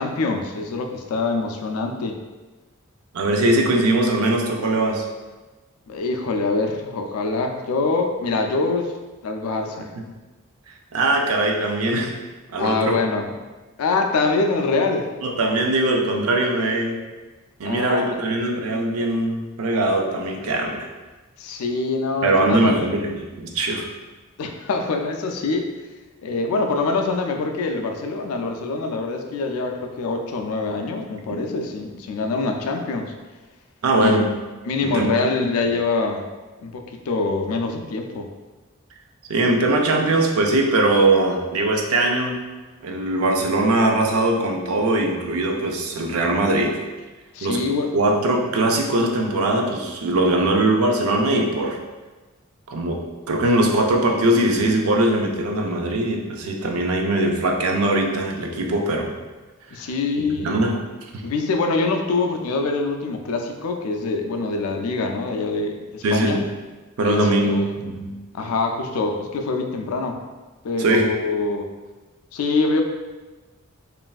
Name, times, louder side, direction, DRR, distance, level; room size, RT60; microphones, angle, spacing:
voice 1, 0.0-2.2 5.9-8.9 9.2-9.9 12.6-13.3 13.8-15.1 17.6-18.2 21.4-22.8 24.4-25.7 26.2-33.1 34.0-34.3 34.7-36.3 36.6-38.3 47.3-47.9 59.7-60.6 61.2-66.4 67.0-67.7 68.3-70.2 70.6-71.7 72.3-72.8, left 3 dB, 85° left, 4 dB, 0.4 m, -24 dB
voice 2, 3.1-5.0 10.0-10.1 10.9-12.1 12.5-13.0 15.2-17.0 17.6-20.9 22.2-23.9 31.3-31.4 33.8-34.3 34.8-35.2 39.3-42.4 42.8-46.8 47.4-47.6 47.9-51.8 52.7-59.1 60.3-60.8 61.1-61.2 66.0-66.5 67.0-68.1 70.8-71.1, right 2 dB, 85° right, 2 dB, 0.4 m, -21 dB
3.1 x 2.5 x 2.3 m, 1.2 s
head